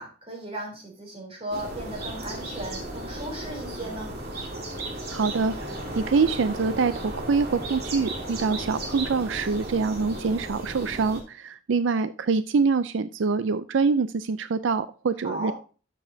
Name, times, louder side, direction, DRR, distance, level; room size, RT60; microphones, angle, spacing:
voice 1, 0.0-4.2 15.2-15.5, right 1 dB, 30° right, 1 dB, 3.5 m, -36 dB
sound 1, 1.5-11.2, right 1 dB, 55° right, 2.8 m, -35 dB
voice 2, 5.1-5.5 6.0-15.5, right 4 dB, 85° right, 13 dB, 0.5 m, -25 dB
12.5 x 7.0 x 2.7 m, 0.36 s
head